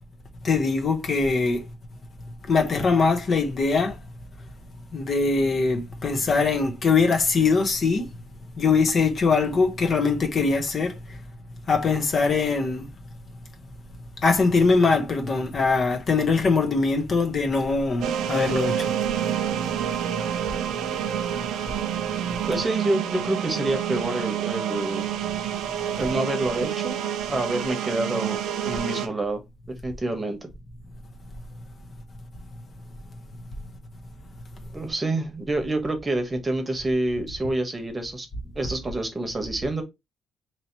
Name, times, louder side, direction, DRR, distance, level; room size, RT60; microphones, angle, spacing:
voice 1, 0.4-1.6 2.5-3.9 4.9-8.1 8.6-10.9 11.7-12.9 14.2-18.9, left 4 dB, 50° left, 1.0 m, -22 dB
sound 1, 18.0-29.1, right 9 dB, 85° right, 0.5 m, -28 dB
voice 2, 22.5-25.1 26.0-27.0 27.3-29.4 29.8-30.5 34.7-38.3 38.5-39.8, right 2 dB, 25° right, 1.1 m, -27 dB
3.1 x 2.8 x 4.3 m
cardioid pair, 90°, 0 cm